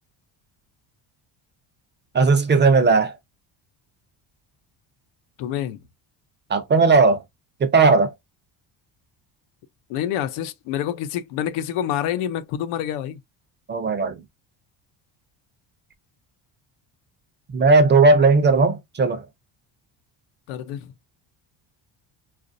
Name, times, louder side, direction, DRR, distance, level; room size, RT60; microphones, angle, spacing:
voice 1, 2.1-3.2 6.5-7.2 7.6-8.1 13.7-14.2 17.5-19.2, right 3 dB, 25° right, 0.5 m, -17 dB
voice 2, 5.4-5.8 9.9-13.2 20.5-20.9, left 10 dB, 90° left, 0.7 m, -27 dB
3.9 x 2.5 x 2.5 m
cardioid pair, 145°, 47 cm